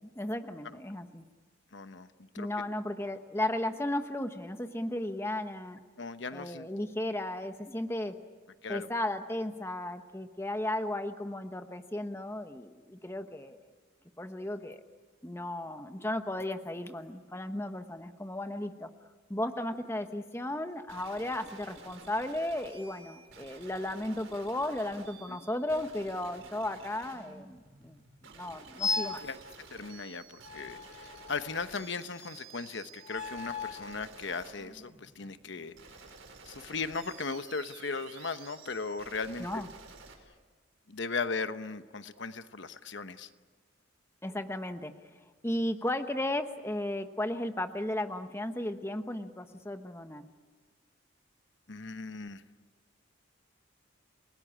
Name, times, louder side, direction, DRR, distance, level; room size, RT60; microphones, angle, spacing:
voice 1, 0.1-1.2 2.4-5.8 6.3-8.1 8.7-13.6 14.2-14.8 15.2-18.9 19.3-28.0 28.3-29.2 39.4-39.7 44.2-44.9 45.4-50.3, left 1 dB, 10° left, 8 dB, 1.0 m, -35 dB
voice 2, 1.7-2.1 2.3-2.5 6.0-6.7 8.6-8.9 25.3-25.4 29.2-29.4 29.7-35.7 36.4-39.6 40.9-43.3 51.7-52.4, left 4 dB, 65° left, 10 dB, 1.0 m, -37 dB
sound 1, 20.9-40.1, right 4 dB, 80° right, 4.7 m, -52 dB
sound 2, 28.8-29.3 30.4-31.7 33.0-33.9, left 4 dB, 35° left, 1.9 m, -36 dB
29.5 x 18.5 x 9.9 m, 1.4 s
head